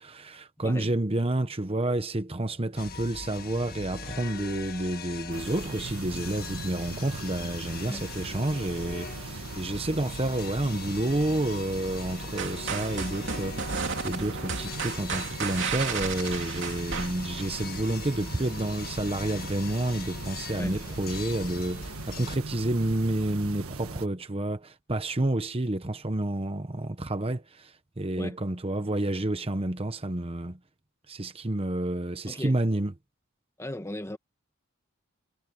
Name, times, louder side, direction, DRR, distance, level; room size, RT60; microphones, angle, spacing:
voice 1, 0.0-30.6 31.1-32.9, right 1 dB, 25° right, 1.0 m, -30 dB
voice 2, 0.6-0.9 7.9-8.0 20.6-20.8 28.2-28.4 32.3-32.6 33.6-34.2, left 1 dB, 15° left, 1.5 m, -37 dB
sound 1, 2.8-22.4, left 5 dB, 45° left, 1.6 m, -41 dB
sound 2, 5.3-24.1, right 3 dB, 90° right, 1.6 m, -40 dB
sound 3, 12.4-17.6, right 5 dB, 60° right, 2.9 m, -33 dB
head